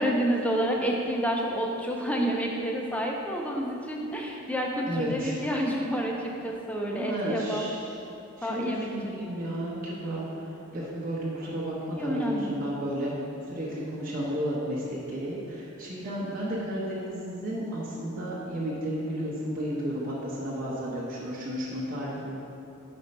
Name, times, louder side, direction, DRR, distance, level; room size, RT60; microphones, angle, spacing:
voice 1, 0.0-7.6 8.4-8.9 12.0-12.5, equal, 5° left, -1 dB, 0.5 m, -29 dB
voice 2, 4.9-5.4 6.9-8.0 8.4-13.1 13.5-22.4, equal, 40° right, -7 dB, 1.0 m, -32 dB
5.5 x 4.4 x 5.3 m, 2.8 s
head